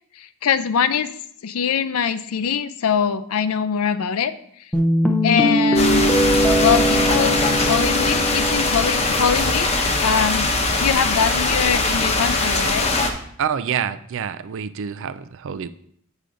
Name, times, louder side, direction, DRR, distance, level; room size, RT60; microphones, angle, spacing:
voice 1, 0.2-1.1 1.4-4.3 5.2-6.0 6.6-10.5 10.8-12.9, left 7 dB, 75° left, 12 dB, 0.5 m, -23 dB
Guitar, 4.7-9.8, equal, 5° left, 0.6 m, -21 dB
sound 1, 5.7-13.1, left 2 dB, 30° left, 0.8 m, -21 dB
voice 2, 13.4-15.7, right 8 dB, 65° right, 14 dB, 0.4 m, -27 dB
8.3 x 4.9 x 3.9 m, 0.66 s
head